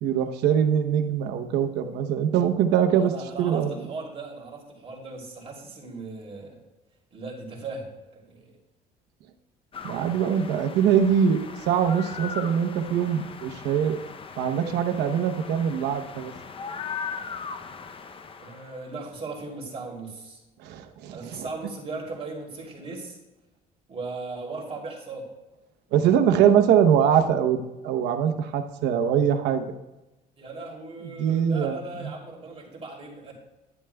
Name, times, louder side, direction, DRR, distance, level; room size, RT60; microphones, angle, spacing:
voice 1, 0.0-3.1 3.4-3.7 9.8-14.0 14.4-16.3 20.6-21.4 25.9-29.6 31.2-32.1, right 8 dB, 85° right, 7 dB, 0.9 m, -23 dB
voice 2, 2.9-6.6 7.1-8.6 18.4-20.4 21.1-23.2 23.9-25.3 30.4-33.3, right 3 dB, 35° right, -2 dB, 3.0 m, -38 dB
sound 1, 9.7-18.9, left 6 dB, 30° left, 0.6 m, -39 dB
11.0 x 11.0 x 2.3 m, 1.0 s
cardioid pair, 110°, 17 cm